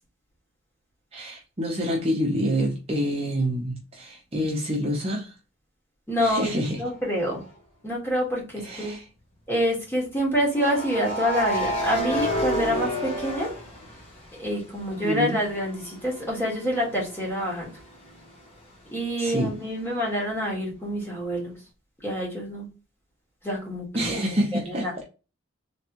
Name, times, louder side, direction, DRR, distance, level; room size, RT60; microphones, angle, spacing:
voice 1, 1.1-5.3 6.2-6.8 8.6-9.0 15.0-15.4 19.2-19.5 23.9-24.9, equal, 30° right, -2 dB, 0.7 m, -27 dB
voice 2, 6.1-7.4 7.8-8.9 9.5-13.5 14.4-17.8 18.9-21.5 22.0-22.7 23.4-24.1 24.5-25.0, equal, 10° left, -4 dB, 1.6 m, -27 dB
sound 1, 7.2-7.5 10.5-14.4 14.8-18.4, equal, 30° left, 1.1 m, -31 dB
3.5 x 3.1 x 2.9 m, 0.32 s
head